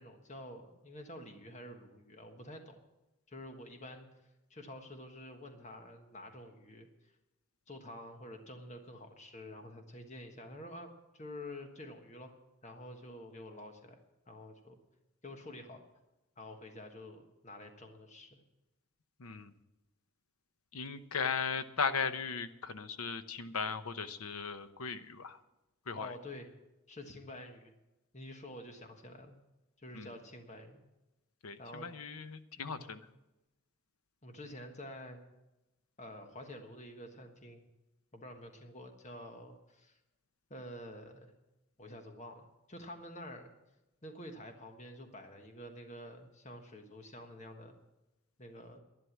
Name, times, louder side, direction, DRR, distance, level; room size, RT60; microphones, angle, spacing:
voice 1, 0.0-2.8 3.3-4.1 4.5-7.1 7.7-12.3 12.6-14.0 14.3-14.8 15.2-15.8 16.4-18.4 26.0-26.5 26.9-27.7 28.1-29.4 29.8-30.8 31.6-31.9 32.6-33.0 34.2-35.2 36.0-37.6 38.1-40.0 40.5-41.3 41.8-43.5 44.0-47.7 48.4-48.8, left 1 dB, 30° left, 4 dB, 1.4 m, -48 dB
voice 2, 19.2-19.5 20.7-25.4 25.9-26.1 29.9-30.1 31.4-33.0, left 5 dB, 80° left, 10 dB, 0.9 m, -37 dB
11.0 x 11.0 x 7.3 m, 0.97 s
head